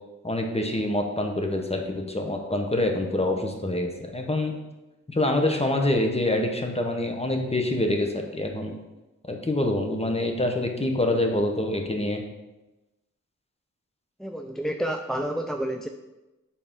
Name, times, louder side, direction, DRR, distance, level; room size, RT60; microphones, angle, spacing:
voice 1, 0.2-4.5 5.1-8.7 9.3-12.2, left 1 dB, 20° left, 2 dB, 1.2 m, -26 dB
voice 2, 14.2-15.9, right 1 dB, ahead, 5 dB, 0.3 m, -29 dB
8.0 x 4.2 x 3.7 m, 1.1 s
cardioid pair, 50°, 32 cm